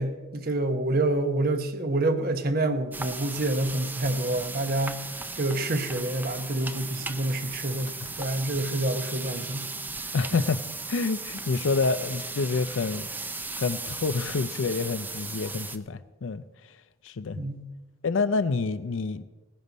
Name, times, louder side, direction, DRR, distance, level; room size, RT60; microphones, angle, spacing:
voice 1, 0.0-5.0 5.3-9.7 10.3-10.4 17.4-17.7, right 2 dB, 45° right, 8 dB, 1.0 m, -27 dB
sound 1, 2.9-15.8, right 3 dB, 10° right, 0.4 m, -36 dB
voice 2, 10.1-16.8 17.0-17.4 18.0-19.2, left 4 dB, 70° left, 13 dB, 0.5 m, -28 dB
19.0 x 10.5 x 4.1 m, 1.2 s
head